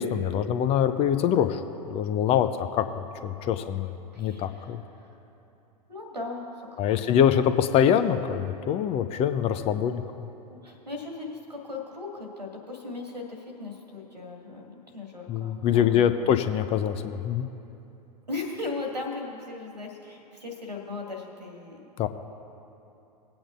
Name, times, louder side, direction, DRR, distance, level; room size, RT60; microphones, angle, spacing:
voice 1, 0.0-1.6 1.9-3.9 4.2-4.8 6.8-10.0 15.3-17.5 22.0-22.1, left 9 dB, 30° left, 9 dB, 0.6 m, -24 dB
voice 2, 4.1-5.2 5.9-7.3 10.5-16.3 18.3-21.8, left 3 dB, 90° right, 1 dB, 2.1 m, -38 dB
21.0 x 8.6 x 2.5 m, 3.0 s
figure-of-eight pair, 90°, 20 cm